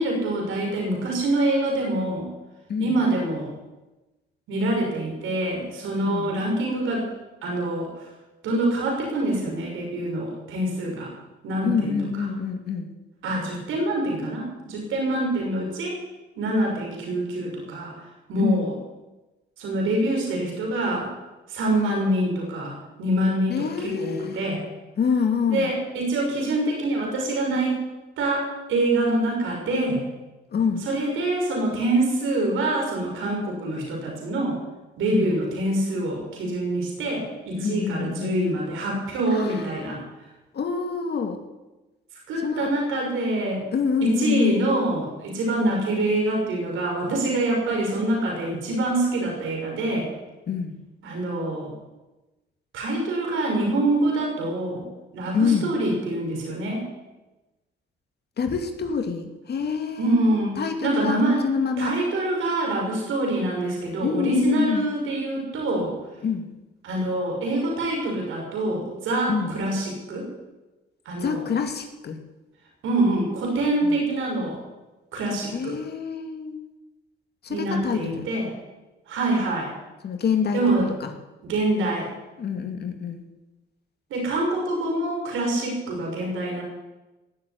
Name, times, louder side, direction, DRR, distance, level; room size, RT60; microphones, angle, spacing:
voice 1, 0.0-2.3 2.8-3.5 4.5-7.1 7.4-8.1 8.4-11.1 11.4-12.0 13.2-16.0 16.4-18.7 19.6-21.1 21.5-24.6 25.5-27.8 28.2-30.0 30.9-34.6 35.0-40.0 42.3-43.7 44.0-50.1 51.0-51.7 52.7-54.9 55.1-56.9 60.0-61.4 61.8-65.9 66.8-70.3 71.1-71.4 72.8-74.6 75.1-75.8 77.5-78.5 79.1-79.7 80.5-80.9 81.5-82.1 84.1-86.6, right 1 dB, 80° right, -1 dB, 5.9 m, -25 dB
voice 2, 11.6-12.9 18.4-18.7 23.5-24.5 25.0-25.7 30.5-30.9 35.1-35.3 37.6-38.6 39.3-40.0 40.5-41.4 42.4-42.7 43.7-44.6 50.5-50.7 55.3-55.7 58.4-60.2 60.6-62.0 64.0-64.9 66.2-66.5 69.3-69.6 71.2-72.2 73.8-74.0 75.5-76.6 77.4-78.3 80.0-80.6 81.0-81.1 82.4-83.2, left 6 dB, 55° left, 4 dB, 2.5 m, -26 dB
17.5 x 7.9 x 9.5 m, 1.1 s
cardioid pair, 90°, 20 cm